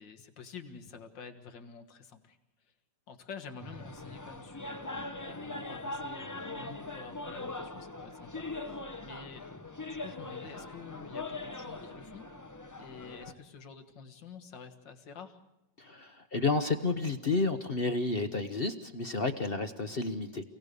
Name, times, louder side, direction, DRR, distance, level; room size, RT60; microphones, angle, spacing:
voice 1, 0.0-2.4 2.6-2.7 3.1-9.5 9.9-12.2 12.8-15.4, left 6 dB, 85° left, 6 dB, 2.3 m, -49 dB
sound 1, 3.6-13.3, left 2 dB, 20° left, 0.5 m, -41 dB
voice 2, 15.8-20.4, left 3 dB, 40° left, 8 dB, 0.9 m, -31 dB
28.0 x 17.5 x 6.8 m, 0.97 s
omnidirectional pair, 1.9 m